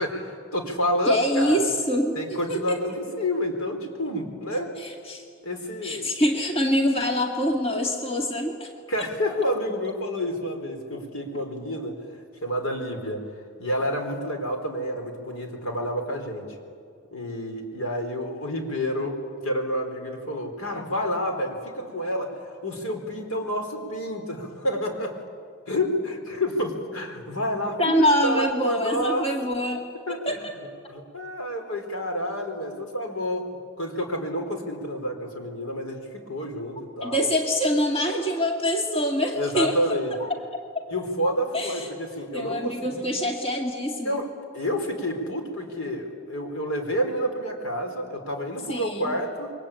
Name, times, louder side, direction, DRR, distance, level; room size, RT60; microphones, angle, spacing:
voice 1, 0.0-1.7 2.1-4.8 5.4-6.1 8.9-12.0 12.4-13.2 13.6-16.5 17.1-19.1 19.4-25.2 25.7-29.3 30.1-30.4 30.9-37.2 39.3-40.2 40.9-43.1 44.0-44.3 44.5-49.5, equal, 80° left, 4 dB, 4.3 m, -29 dB
voice 2, 1.1-2.2 2.5-2.8 4.8-5.2 5.8-8.7 27.8-30.5 37.0-39.8 40.3-40.4 40.7-40.8 41.5-41.9 42.3-44.2 48.7-49.1, equal, 30° left, 2 dB, 2.1 m, -25 dB
27.5 x 23.5 x 8.9 m, 2.2 s
head